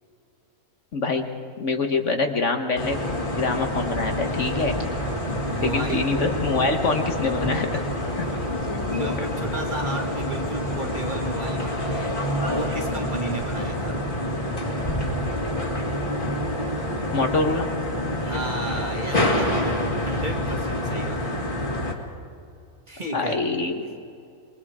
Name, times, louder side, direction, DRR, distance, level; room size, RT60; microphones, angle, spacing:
voice 1, 0.9-1.3 1.6-3.0 3.4-4.7 5.6-7.8 8.2-8.3 17.1-17.7 23.1-23.9, left 3 dB, 55° left, 5 dB, 1.5 m, -24 dB
sound 1, 2.8-21.9, left 1 dB, 35° left, 2.5 m, -27 dB
voice 2, 5.5-6.0 8.3-8.5 8.8-12.2 12.5-14.0 18.2-21.5 22.9-23.4, right 1 dB, 30° right, 2 dB, 2.2 m, -33 dB
27.5 x 22.0 x 4.9 m, 2.5 s
omnidirectional pair, 1.6 m